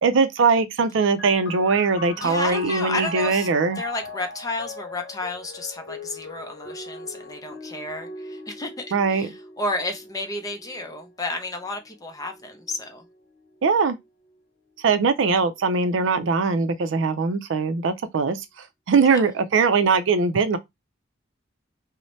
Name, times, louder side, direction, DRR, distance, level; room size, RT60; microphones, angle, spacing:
voice 1, 0.0-3.8 8.9-9.3 13.6-14.0 14.8-18.4 18.9-20.6, right 4 dB, 75° right, 0.4 m, -21 dB
sound 1, 1.2-14.4 15.3-16.1, left 2 dB, 75° left, 0.8 m, -41 dB
voice 2, 2.2-3.5 3.8-13.0 19.0-19.2, left 2 dB, 20° left, 0.5 m, -32 dB
2.7 x 2.1 x 3.0 m
head